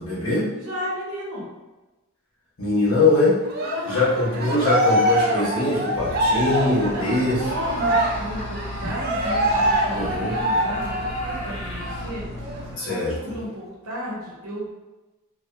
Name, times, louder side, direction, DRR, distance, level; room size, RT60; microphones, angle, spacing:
voice 1, 0.0-0.5 2.6-3.3 3.9-7.4 9.9-10.3 12.8-13.1, left 2 dB, 65° left, -7 dB, 1.0 m, -22 dB
voice 2, 0.6-1.4 3.6-4.2 6.6-14.7, equal, 80° right, -5 dB, 0.8 m, -33 dB
Cheering, 3.5-11.5 11.8-12.0 12.4-13.4, right 1 dB, 45° right, 0.4 m, -24 dB
sound 1, 5.9-12.8, left 1 dB, 5° right, 0.8 m, -36 dB
Screaming, 7.4-12.2, left 1 dB, 25° left, 0.5 m, -37 dB
2.7 x 2.1 x 2.3 m, 1.1 s
head